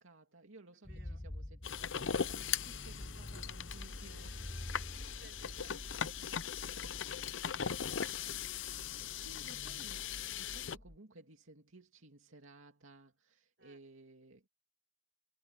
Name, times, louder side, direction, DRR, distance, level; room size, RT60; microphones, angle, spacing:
voice 1, 0.0-4.8 9.0-14.5, right 2 dB, 85° right, 2.6 m, -58 dB
sound 1, 0.8-11.0, left 1 dB, 15° left, 0.7 m, -48 dB
voice 2, 0.9-1.2 4.1-9.0 13.6-13.8, right 2 dB, 55° right, 5.4 m, -65 dB
sound 2, 1.6-10.8, left 8 dB, 75° left, 0.7 m, -39 dB
head